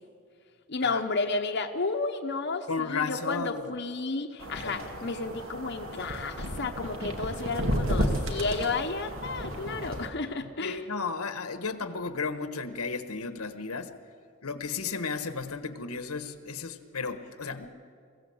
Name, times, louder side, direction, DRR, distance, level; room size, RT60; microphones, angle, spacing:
voice 1, 0.7-10.8, left 3 dB, 50° left, 3 dB, 0.9 m, -32 dB
voice 2, 2.7-3.8 4.6-5.0 10.6-13.9 14.4-17.7, left 4 dB, 90° left, 9 dB, 1.3 m, -34 dB
sound 1, 4.4-10.1, equal, 65° right, 2.2 m, -32 dB
22.5 x 16.0 x 7.9 m, 2.3 s
head